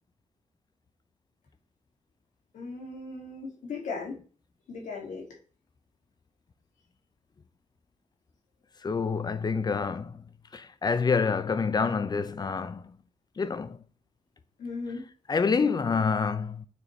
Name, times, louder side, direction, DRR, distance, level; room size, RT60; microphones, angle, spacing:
voice 1, 2.5-4.2 4.7-5.3 14.6-15.0, left 4 dB, 80° left, 2.5 m, -37 dB
voice 2, 8.8-10.2 10.5-12.8 13.4-13.8 15.3-16.7, left 5 dB, 30° left, 0.5 m, -27 dB
7.0 x 4.4 x 3.2 m
wide cardioid pair, 115°, 13 cm